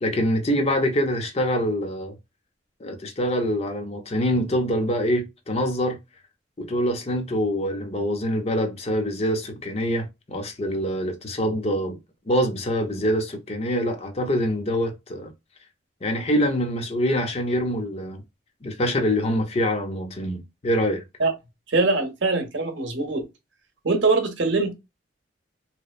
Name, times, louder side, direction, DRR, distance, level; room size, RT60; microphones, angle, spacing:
voice 1, 0.0-2.1 2.8-6.0 6.6-12.0 12.3-15.3 16.0-18.2 18.6-21.0, equal, 30° left, 0.5 m, -25 dB
voice 2, 21.7-23.2 23.8-24.7, right 3 dB, 65° right, 0.7 m, -22 dB
2.8 x 2.0 x 2.3 m
head